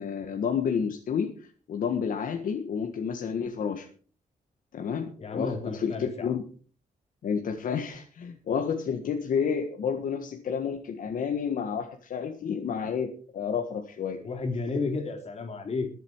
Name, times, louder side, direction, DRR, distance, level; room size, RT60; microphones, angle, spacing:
voice 1, 0.0-3.9 4.7-6.4 7.2-14.2, left 7 dB, 70° left, 4 dB, 1.7 m, -30 dB
voice 2, 5.2-6.3 14.2-15.9, left 3 dB, 45° left, 3 dB, 3.7 m, -32 dB
21.5 x 8.2 x 4.8 m, 0.42 s
wide cardioid pair, 145°, 15 cm